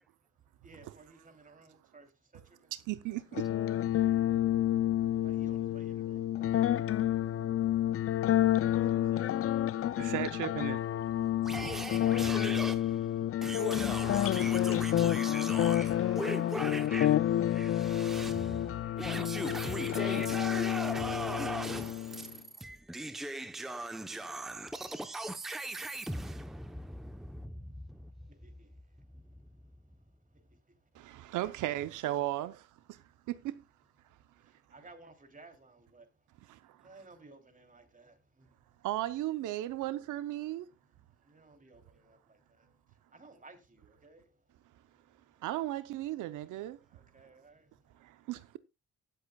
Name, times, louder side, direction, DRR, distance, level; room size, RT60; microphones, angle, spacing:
voice 1, 0.6-2.1 2.3-2.4 5.1-6.5 8.4-9.2 9.7-10.0 28.4-28.7 34.7-36.0 36.8-38.5 41.3-42.4 43.1-44.2 46.9-47.6, right 3 dB, 25° right, 3.1 m, -57 dB
voice 2, 2.7-3.4 10.0-10.8 30.9-33.0 33.3-33.6 36.5-36.8 38.8-40.7 45.4-46.8 48.0-48.6, right 14 dB, 90° right, 0.8 m, -36 dB
sound 1, 3.3-22.3, left 12 dB, 50° left, 0.5 m, -29 dB
voice 3, 11.4-28.1, right 1 dB, ahead, 0.8 m, -39 dB
19.0 x 7.9 x 2.3 m
cardioid pair, 90°, 30 cm